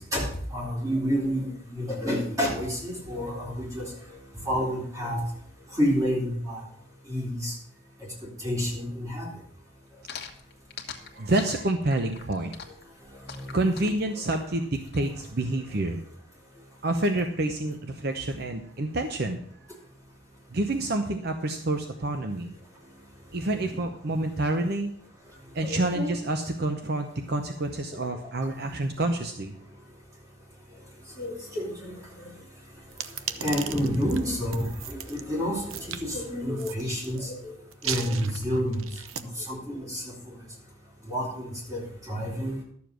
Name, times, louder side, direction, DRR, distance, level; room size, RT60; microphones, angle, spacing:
voice 1, 0.1-3.9 4.5-5.2 5.7-6.6 7.1-7.5 8.4-9.3 13.3-13.9 25.6-26.1 31.2-31.9 33.4-37.5 37.8-38.8 39.1-40.1 41.1-42.5, equal, 15° right, -3 dB, 3.7 m, -29 dB
sound 1, 10.1-15.0, left 7 dB, 55° left, 1.4 m, -42 dB
voice 2, 10.9-12.5 13.5-16.0 16.8-19.4 20.5-22.5 23.3-24.9 25.5-29.5, right 2 dB, 55° right, 6 dB, 0.8 m, -28 dB
sound 2, 32.9-35.2 35.7-36.0 36.6-37.2 37.7-39.2, right 9 dB, 90° right, 0.7 m, -36 dB
12.0 x 7.1 x 6.2 m, 0.62 s
head